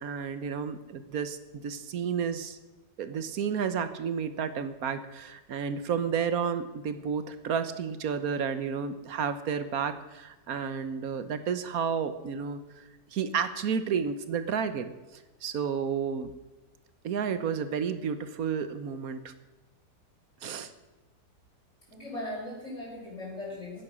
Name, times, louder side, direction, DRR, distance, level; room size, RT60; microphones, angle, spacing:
voice 1, 0.0-2.6 3.0-12.8 13.1-14.9 15.4-16.3 17.0-19.3 20.4-20.7, right 7 dB, 60° right, 11 dB, 1.3 m, -31 dB
voice 2, 21.9-23.8, left 1 dB, 45° left, -9 dB, 4.9 m, -38 dB
14.0 x 9.8 x 6.1 m, 1.1 s
omnidirectional pair, 1.9 m